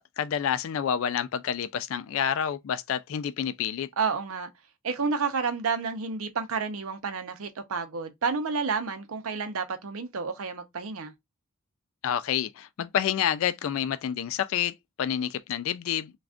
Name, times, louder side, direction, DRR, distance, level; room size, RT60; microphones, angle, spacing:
voice 1, 0.0-3.9 12.0-16.1, left 9 dB, 70° left, 0.3 m, -29 dB
voice 2, 4.0-4.5 4.8-11.1, right 5 dB, 80° right, 0.6 m, -30 dB
3.5 x 2.3 x 2.4 m
head